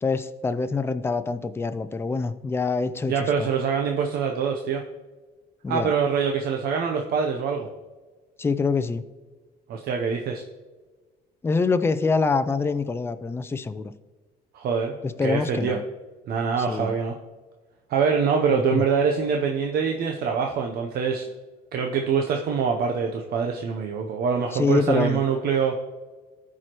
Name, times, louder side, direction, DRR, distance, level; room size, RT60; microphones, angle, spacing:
voice 1, 0.0-3.5 5.6-5.9 8.4-9.0 11.4-13.9 15.0-15.8 16.7-16.9 18.5-18.8 24.5-25.2, left 4 dB, 15° left, 11 dB, 0.4 m, -25 dB
voice 2, 3.1-4.8 5.7-7.7 9.7-10.4 14.5-15.0 15.2-15.8 16.3-17.1 17.9-21.3 21.7-25.8, right 6 dB, 65° right, 3 dB, 0.7 m, -24 dB
13.5 x 4.8 x 3.0 m, 1.3 s
cardioid pair, 110°, 17 cm